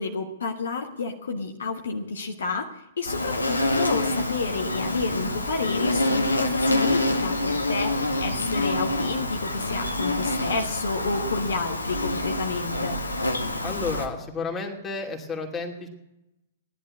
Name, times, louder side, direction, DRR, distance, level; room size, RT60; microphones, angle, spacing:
voice 1, 0.0-2.6 3.0-13.0, left 4 dB, 65° left, 3 dB, 1.6 m, -30 dB
Insect, 3.0-14.1, left 1 dB, 80° left, 1.6 m, -26 dB
voice 2, 13.6-15.9, left 4 dB, 15° left, 0 dB, 2.6 m, -31 dB
16.5 x 11.0 x 6.2 m, 0.91 s
figure-of-eight pair, 110°, 0 cm